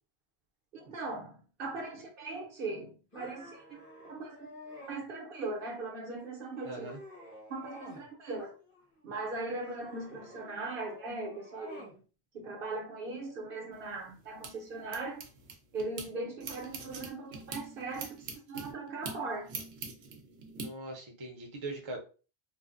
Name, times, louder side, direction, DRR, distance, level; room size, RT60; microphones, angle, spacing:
voice 1, 0.7-6.9 7.5-8.5 9.0-12.0 12.3-15.2 15.7-19.6, right 3 dB, 65° right, 0.9 m, -39 dB
sound 1, 3.1-5.0 5.6-6.1 6.5-8.1 8.4-9.1 9.6-12.0, left 1 dB, 35° left, 0.9 m, -51 dB
voice 2, 6.6-7.0 20.6-22.0, right 2 dB, 35° right, 0.6 m, -41 dB
sound 2, 13.7-16.1 16.4-20.7, right 4 dB, 90° right, 0.9 m, -44 dB
3.2 x 2.0 x 2.4 m
omnidirectional pair, 1.0 m